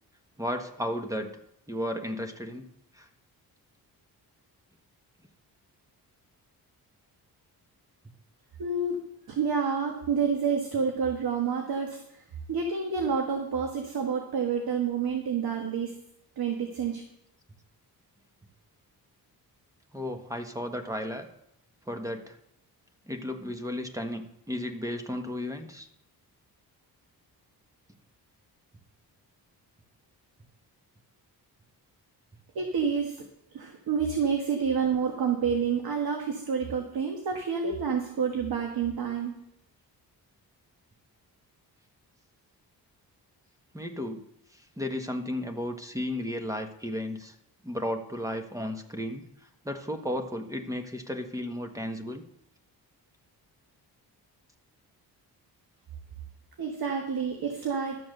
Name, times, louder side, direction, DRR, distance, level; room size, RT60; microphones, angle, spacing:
voice 1, 0.4-1.3 1.7-2.7 2.9-3.1 19.9-21.3 21.9-22.4 23.1-25.9 43.7-44.2 44.5-47.3 47.6-52.2, left 1 dB, 10° right, 6 dB, 1.3 m, -34 dB
voice 2, 8.6-9.0 9.3-12.2 12.5-16.0 16.4-17.0 32.5-33.2 33.5-39.4 56.6-58.0, right 6 dB, 70° right, 3 dB, 1.7 m, -28 dB
12.5 x 7.0 x 6.7 m, 0.75 s
cardioid pair, 100°, 38 cm